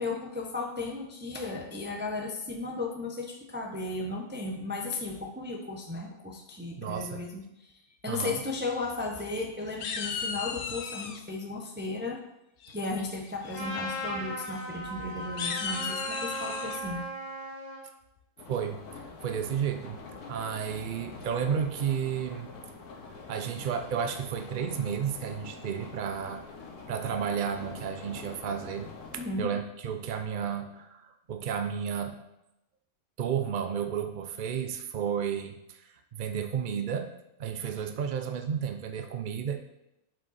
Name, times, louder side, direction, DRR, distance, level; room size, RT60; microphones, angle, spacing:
voice 1, 0.0-7.7 8.0-12.2 12.7-17.0 29.2-29.5, left 3 dB, 10° right, 0 dB, 0.6 m, -35 dB
voice 2, 6.8-7.2 8.1-8.4 18.5-18.8 19.2-20.0 20.3-22.5 23.3-26.4 26.9-28.9 29.4-32.2 33.2-37.1 37.4-39.6, right 7 dB, 85° right, 7 dB, 0.4 m, -32 dB
sound 1, 8.8-9.4 9.8-11.2 12.6-13.0 13.4-13.7 13.9-14.1 14.5-14.6 15.2-16.8, left 6 dB, 70° left, 0.5 m, -36 dB
Trumpet, 13.5-17.8, equal, 30° left, 1.6 m, -37 dB
sound 2, 18.4-29.3, left 4 dB, 90° left, 1.6 m, -45 dB
7.4 x 5.3 x 4.1 m, 0.89 s
omnidirectional pair, 1.6 m